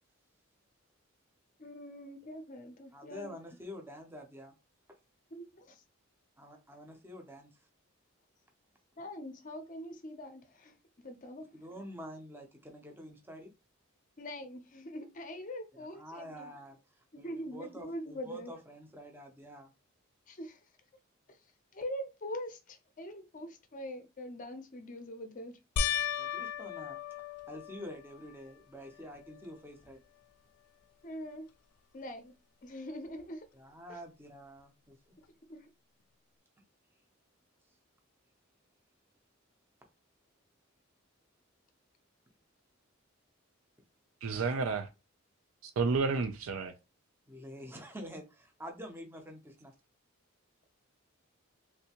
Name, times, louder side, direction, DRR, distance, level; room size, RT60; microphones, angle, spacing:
voice 1, 1.6-3.3 5.3-5.8 9.0-11.5 14.2-16.5 17.1-18.5 20.3-20.6 21.3-21.4 21.7-25.6 31.0-31.5 31.9-32.3 32.6-33.5 33.9-34.0 35.5-35.7, equal, 40° left, 0.5 m, -43 dB
voice 2, 2.9-4.5 6.4-7.5 11.5-13.5 15.8-16.8 17.2-19.7 26.2-27.0 27.5-30.0 33.5-35.0 47.3-49.7, equal, 10° right, 0.6 m, -47 dB
sound 1, 25.8-28.4 29.0-29.5 29.9-30.0 33.2-33.3, left 7 dB, 90° left, 0.4 m, -36 dB
voice 3, 44.2-44.9 45.6-46.7, right 4 dB, 75° right, 0.4 m, -31 dB
3.2 x 2.7 x 2.8 m
head